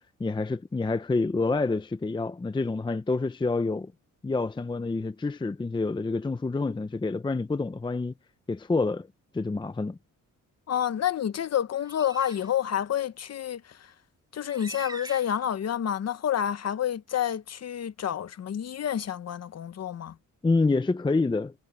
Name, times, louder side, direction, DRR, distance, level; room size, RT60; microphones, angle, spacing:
voice 1, 0.2-3.9 4.2-8.1 8.5-9.1 9.3-10.0 20.4-21.5, left 3 dB, 15° left, 0.6 m, -27 dB
voice 2, 10.7-13.9 14.3-20.2, left 9 dB, 50° left, 1.0 m, -29 dB
sound 1, 11.8-12.5 13.2-13.3 14.5-15.7, right 2 dB, 10° right, 3.1 m, -44 dB
cardioid pair, 120°, 34 cm